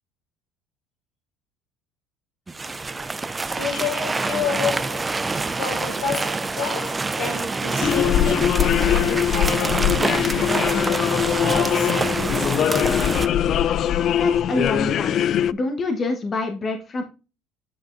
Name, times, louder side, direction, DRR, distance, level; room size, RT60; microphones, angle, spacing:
sound 1, 2.5-13.3, right 3 dB, 15° right, 0.5 m, -26 dB
voice 1, 3.5-5.2 5.6-11.2 11.5-12.1, left 6 dB, 85° left, 4.5 m, -30 dB
sound 2, 7.8-15.5, left 10 dB, 50° left, 0.3 m, -21 dB
voice 2, 14.2-15.2 15.5-17.0, left 2 dB, 30° left, 1.1 m, -26 dB
8.7 x 6.5 x 2.5 m
supercardioid pair, 105°, 0 cm